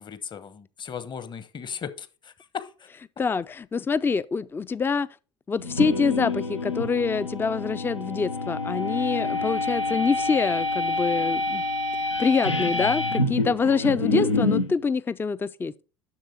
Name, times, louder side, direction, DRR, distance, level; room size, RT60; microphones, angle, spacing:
voice 1, 0.0-2.9 9.9-10.1, left 7 dB, 30° left, 1.0 m, -37 dB
voice 2, 3.2-5.1 5.5-11.6 12.2-15.7, left 5 dB, 15° left, 0.4 m, -25 dB
sound 1, 5.6-14.7, left 2 dB, 85° left, 0.7 m, -27 dB
7.4 x 6.7 x 4.5 m
figure-of-eight pair, 60°, 15 cm